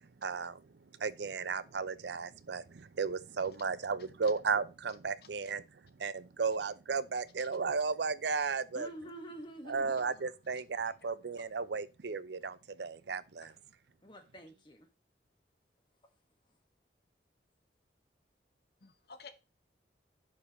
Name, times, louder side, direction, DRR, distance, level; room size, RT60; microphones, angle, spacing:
voice 1, 0.2-0.6 1.0-5.6 6.0-8.9 9.7-13.5, right 5 dB, 75° right, 0.6 m, -34 dB
voice 2, 8.7-9.9 13.4-13.5 14.0-14.9, right 1 dB, 25° left, 1.5 m, -47 dB
voice 3, 9.9-10.3 10.7-10.8 18.8-19.3, left 4 dB, 60° left, 1.0 m, -53 dB
11.0 x 5.0 x 3.1 m
head